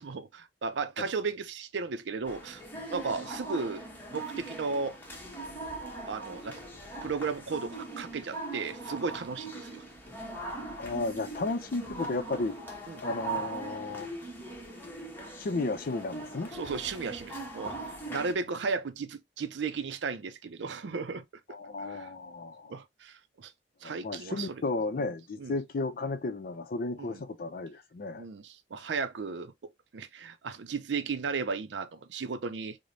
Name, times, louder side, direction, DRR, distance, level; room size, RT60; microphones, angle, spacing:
voice 1, 0.0-3.8 4.1-5.0 6.1-6.6 7.0-9.8 12.9-13.0 16.5-17.8 18.1-21.2 21.8-22.1 22.7-23.5 23.8-24.5 24.9-25.0 25.4-25.5 27.0-27.2 28.1-29.5 29.9-32.8, right 4 dB, 80° right, 0.5 m, -35 dB
sound 1, 2.2-18.3, right 2 dB, 10° left, 1.0 m, -40 dB
voice 2, 10.8-12.6 13.0-14.1 15.4-16.5 21.5-22.8 23.8-28.2, left 3 dB, 55° left, 0.5 m, -33 dB
4.9 x 2.1 x 2.6 m
head